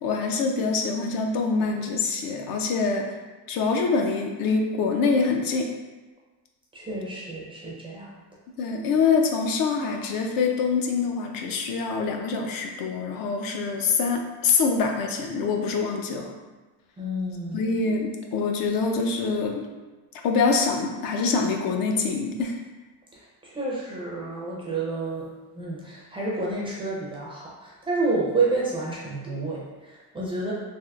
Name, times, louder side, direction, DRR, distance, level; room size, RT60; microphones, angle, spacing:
voice 1, 0.0-3.2 3.5-5.7 8.6-16.3 17.5-19.7 20.2-22.6, left 4 dB, 60° left, 2 dB, 0.5 m, -25 dB
voice 2, 6.7-8.2 17.0-17.7 23.1-25.3 25.5-30.5, right 3 dB, 15° right, -5 dB, 0.4 m, -30 dB
3.5 x 2.4 x 2.3 m, 1.2 s
cardioid pair, 160°, 39 cm